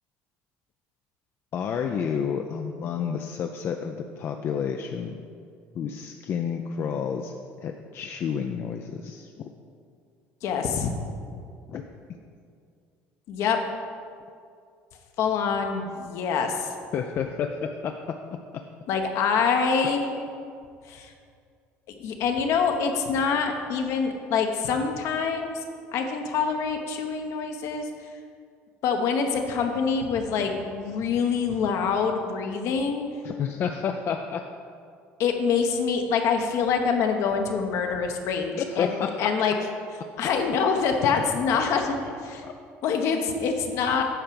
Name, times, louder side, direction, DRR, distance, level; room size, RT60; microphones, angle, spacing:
voice 1, 1.5-5.2 5.7-7.3 7.6-9.5 11.7-11.8 16.9-18.0 19.8-19.9 33.2-34.4 38.5-39.3 41.1-41.2 41.5-41.7 42.4-42.5, left 7 dB, 50° left, 4 dB, 0.5 m, -30 dB
voice 2, 10.4-10.9 13.3-13.6 15.2-16.7 18.9-20.1 20.8-21.1 21.9-25.6 25.9-27.9 28.8-33.0 35.2-38.9 39.2-39.5 40.2-42.4 42.8-44.0, left 5 dB, 65° left, 4 dB, 1.0 m, -25 dB
8.9 x 4.6 x 7.0 m, 2.3 s
cardioid pair, 110°, 5 cm